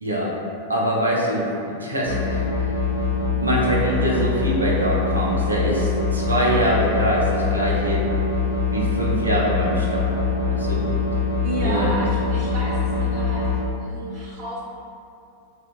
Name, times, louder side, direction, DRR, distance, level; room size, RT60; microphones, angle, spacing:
voice 1, 0.0-0.3 0.7-2.4 3.2-8.0 8.7-10.1 10.5-10.8 11.6-11.9, right 1 dB, 80° right, -3 dB, 0.4 m, -24 dB
sound 1, 2.0-13.6, left 4 dB, 75° left, 0.5 m, -23 dB
voice 2, 11.4-13.4 13.8-14.6, right 1 dB, 40° right, -10 dB, 1.2 m, -31 dB
2.8 x 2.1 x 2.3 m, 2.5 s
figure-of-eight pair, 90°, 0 cm